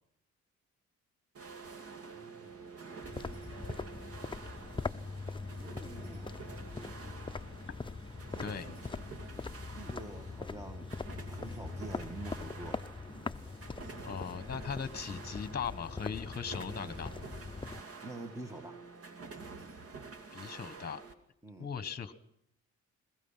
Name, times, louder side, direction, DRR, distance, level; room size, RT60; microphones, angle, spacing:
sound 1, 1.3-21.1, right 4 dB, 50° right, 2.5 m, -49 dB
voice 1, 2.1-3.1 5.6-7.2 9.7-10.9 11.3-13.4 18.0-18.9 21.4-21.7, right 2 dB, 10° right, 8 dB, 1.9 m, -48 dB
sound 2, 3.0-17.8, left 4 dB, 15° left, 0.7 m, -42 dB
voice 2, 14.0-17.1 20.3-21.0 21.6-22.1, left 6 dB, 30° left, 13 dB, 1.6 m, -39 dB
21.5 x 21.5 x 5.9 m, 0.73 s
cardioid pair, 90°, 30 cm